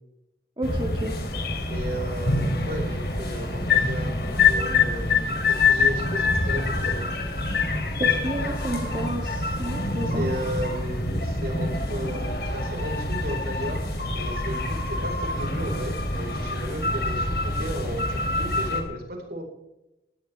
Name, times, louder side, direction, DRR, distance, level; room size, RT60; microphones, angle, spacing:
sound 1, 0.6-18.8, left 3 dB, 60° left, 3.2 m, -26 dB
voice 1, 0.6-1.1 8.0-10.3, right 1 dB, 25° right, 0 dB, 1.8 m, -31 dB
voice 2, 1.7-5.3 5.6-7.1 10.1-13.8 14.1-19.4, right 1 dB, 55° right, 2 dB, 4.5 m, -34 dB
18.5 x 16.5 x 3.4 m, 0.93 s
head